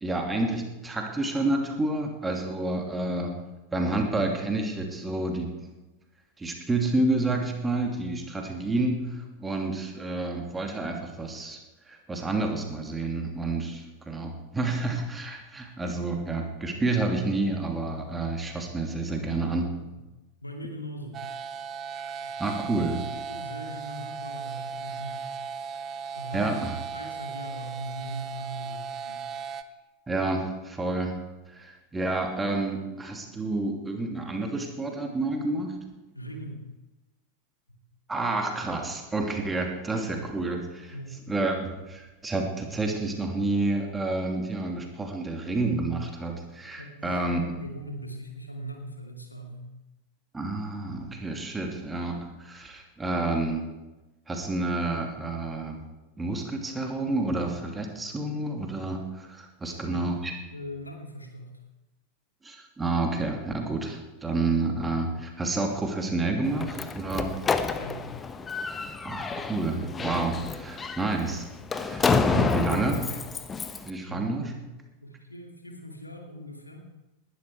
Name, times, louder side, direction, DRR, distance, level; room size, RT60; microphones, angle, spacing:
voice 1, 0.0-3.3 3.7-5.5 6.4-11.6 11.9-19.7 22.4-23.0 26.3-26.7 30.1-31.2 31.5-35.8 38.1-40.9 41.3-47.6 50.3-53.6 54.3-55.8 56.2-60.3 62.4-67.3 69.0-71.5 71.7-73.1 73.9-74.5, right 2 dB, 10° right, 3 dB, 2.7 m, -29 dB
voice 2, 20.4-21.1 22.2-22.8 23.1-25.3 26.1-29.2 36.1-36.6 37.7-37.8 40.9-41.2 46.8-49.7 59.6-60.1 60.5-61.5 67.2-67.3 67.8-68.0 74.1-74.6 75.0-76.8, right 1 dB, 85° left, 2 dB, 2.6 m, -40 dB
sound 1, 21.1-29.6, right 6 dB, 30° right, 1.0 m, -37 dB
Slam, 66.4-73.9, left 4 dB, 15° left, 1.0 m, -29 dB
20.0 x 12.0 x 4.8 m, 1.1 s
figure-of-eight pair, 90°, 0 cm